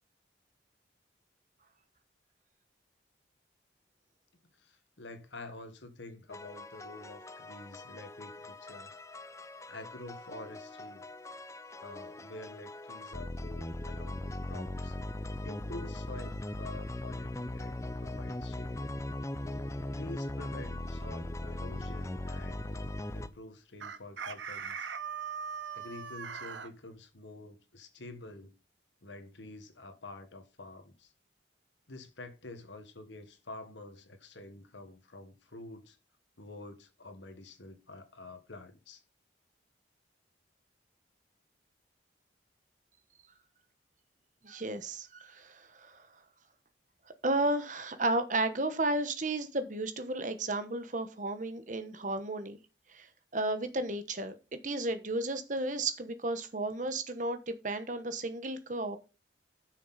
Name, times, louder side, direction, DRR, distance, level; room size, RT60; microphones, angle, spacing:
voice 1, 4.6-8.9 9.7-11.1 11.7-15.0 15.4-18.8 19.9-24.9 25.7-28.5 29.0-31.1 31.9-36.0 36.4-39.0, left 2 dB, 80° left, 1.5 m, -48 dB
sound 1, 6.3-23.3, left 1 dB, 15° left, 0.4 m, -40 dB
Chicken rooster, 23.8-26.7, right 6 dB, 75° right, 0.9 m, -40 dB
voice 2, 44.4-46.0 47.2-52.6 52.9-53.1 53.3-59.0, right 2 dB, 40° right, 1.1 m, -33 dB
11.0 x 6.4 x 4.1 m
head